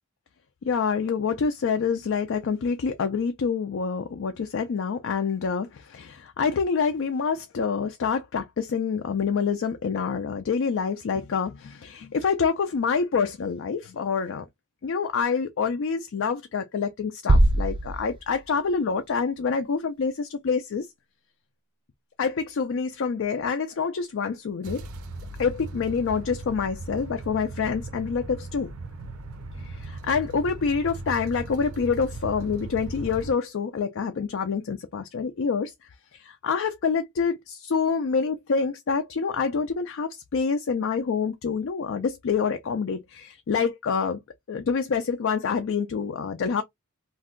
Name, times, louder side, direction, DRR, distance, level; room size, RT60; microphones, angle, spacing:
voice 1, 0.6-14.4 14.8-20.9 22.2-24.9 25.4-28.7 29.6-35.7 36.1-44.2 44.5-46.6, left 5 dB, 60° left, 0.4 m, -27 dB
sound 1, 17.3-19.1, right 1 dB, 25° right, 0.3 m, -23 dB
sound 2, 24.6-33.3, right 2 dB, 80° right, 0.6 m, -38 dB
2.6 x 2.2 x 3.6 m
head